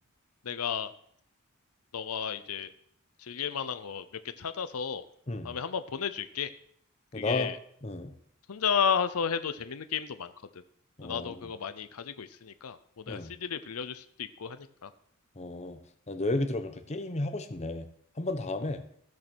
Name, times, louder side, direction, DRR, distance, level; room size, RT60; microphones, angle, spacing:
voice 1, 0.4-0.9 1.9-2.7 3.2-4.0 4.4-5.0 5.4-6.5 7.1-7.6 8.5-10.3 11.0-14.9, left 7 dB, 85° left, 12 dB, 0.7 m, -33 dB
voice 2, 7.1-7.5 7.8-8.1 11.0-11.5 13.1-13.3 15.4-15.8 16.1-17.9 18.2-18.8, left 2 dB, 30° left, 7 dB, 1.0 m, -33 dB
15.5 x 6.5 x 6.2 m, 0.67 s
head